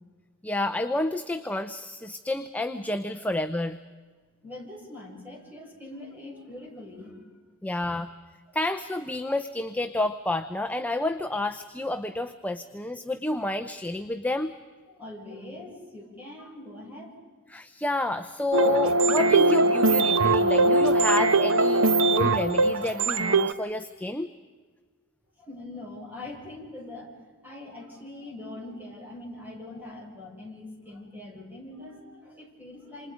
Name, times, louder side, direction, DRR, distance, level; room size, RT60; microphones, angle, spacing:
voice 1, 0.4-3.8 7.6-8.1 8.5-14.5 17.5-24.3, left 2 dB, 5° left, 8 dB, 0.6 m, -29 dB
voice 2, 4.4-7.2 8.5-8.6 14.9-17.1 25.4-27.1 27.4-33.1, left 2 dB, 10° right, -2 dB, 6.5 m, -42 dB
sound 1, 18.5-23.5, right 2 dB, 65° right, 0.9 m, -21 dB
28.5 x 26.5 x 5.1 m, 1.5 s
head